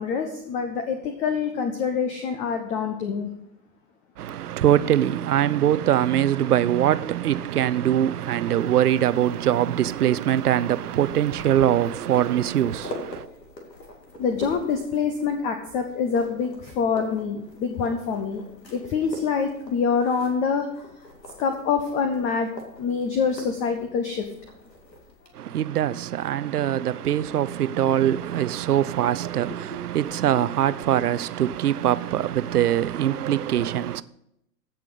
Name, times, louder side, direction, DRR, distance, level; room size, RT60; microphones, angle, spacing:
voice 1, 0.0-3.3 14.2-18.4 18.7-20.9 21.4-22.5 22.8-24.3, left 6 dB, 15° left, 0.5 m, -25 dB
voice 2, 4.2-13.3 25.3-34.0, right 11 dB, 65° right, 0.6 m, -22 dB
sound 1, 8.6-25.3, left 1 dB, 80° left, 2.5 m, -44 dB
15.0 x 5.9 x 5.1 m
figure-of-eight pair, 105°, 49 cm